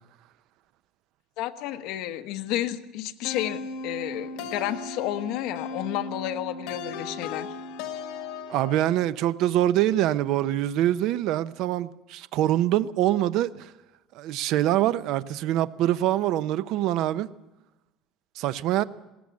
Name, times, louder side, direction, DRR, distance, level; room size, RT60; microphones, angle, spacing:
voice 1, 1.4-7.5, left 13 dB, 65° left, 1.1 m, -31 dB
sound 1, 3.2-9.0, left 4 dB, 85° left, 1.8 m, -36 dB
voice 2, 8.5-13.7 14.1-17.3 18.4-18.8, right 13 dB, 60° right, 0.7 m, -24 dB
20.0 x 18.0 x 8.5 m
cardioid pair, 160°, 0 cm